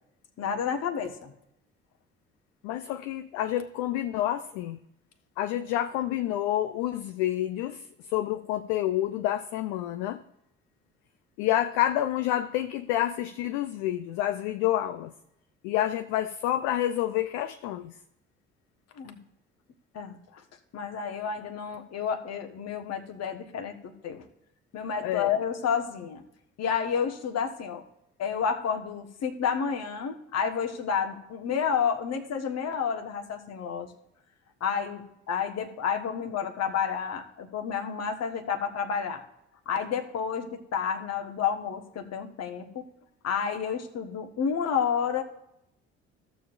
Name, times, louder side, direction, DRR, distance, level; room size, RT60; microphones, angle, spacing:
voice 1, 0.4-1.3 19.0-19.2 19.9-20.4 20.7-24.3 24.7-26.2 26.6-27.8 28.2-33.9 34.6-39.2 39.7-42.9 43.2-45.2, left 7 dB, 50° left, 5 dB, 1.3 m, -30 dB
voice 2, 2.6-4.8 5.4-7.8 8.1-10.2 11.4-15.1 15.6-17.9 25.0-25.3, left 12 dB, 70° left, 9 dB, 0.5 m, -28 dB
15.0 x 7.1 x 2.5 m, 0.82 s
hypercardioid pair, 50°, 32 cm